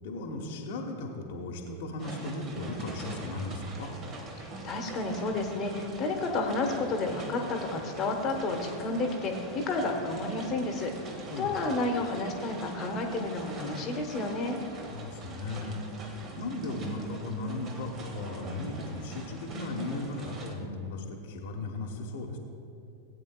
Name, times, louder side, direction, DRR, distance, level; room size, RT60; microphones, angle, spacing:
voice 1, 0.0-3.9 11.3-11.6 14.9-16.1 16.4-22.4, left 2 dB, 55° left, 0 dB, 1.1 m, -36 dB
sound 1, 2.0-20.6, right 2 dB, 30° right, 1.3 m, -43 dB
voice 2, 4.4-14.6, left 2 dB, 30° left, 3 dB, 1.2 m, -31 dB
18.0 x 8.5 x 2.3 m, 2.8 s
figure-of-eight pair, 90°, 0 cm